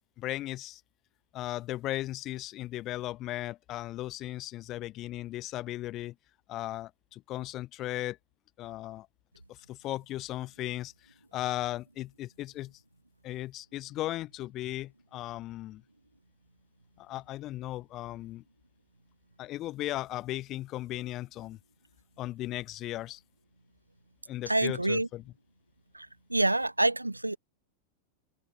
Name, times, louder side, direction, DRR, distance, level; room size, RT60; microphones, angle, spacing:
voice 1, 0.2-0.8 1.3-6.1 6.5-8.2 8.6-9.1 9.5-12.8 13.2-15.8 17.0-18.4 19.4-21.6 22.2-23.2 24.3-25.2, left 15 dB, 35° left, 6.6 m, -36 dB
voice 2, 24.5-25.1 25.9-27.4, right 2 dB, 85° right, 1.3 m, -27 dB
figure-of-eight pair, 90°, 0 cm